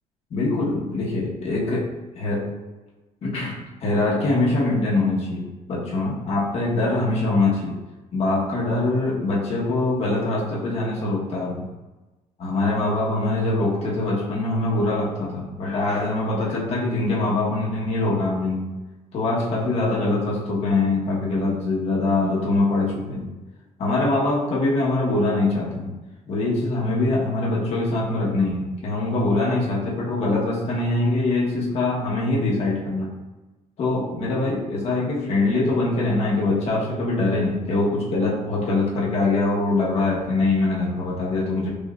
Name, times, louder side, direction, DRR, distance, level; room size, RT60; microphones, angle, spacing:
voice 1, 0.3-1.8 2.1-2.5 3.2-7.7 8.1-11.7 12.4-18.7 19.1-23.2 23.8-25.9 26.3-33.1 33.8-41.7, left 2 dB, 50° left, -5 dB, 1.2 m, -23 dB
5.3 x 2.5 x 2.4 m, 1.1 s
cardioid pair, 130°, 13 cm